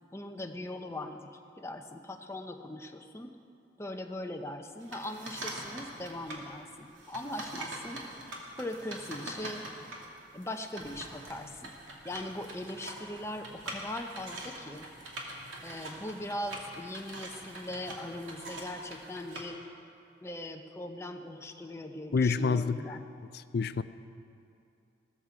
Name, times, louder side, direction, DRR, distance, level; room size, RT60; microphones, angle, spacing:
voice 1, 0.1-3.3 3.8-8.0 8.6-9.6 10.3-11.7 12.0-14.9 15.6-19.6 20.2-23.1, left 1 dB, 15° left, 5 dB, 0.7 m, -40 dB
sound 1, 4.8-6.4 6.9-19.4, right 1 dB, 80° right, 2.4 m, -44 dB
voice 2, 22.1-22.8 23.5-23.8, left 4 dB, 55° left, 12 dB, 0.4 m, -27 dB
16.0 x 14.0 x 5.0 m, 2.6 s
head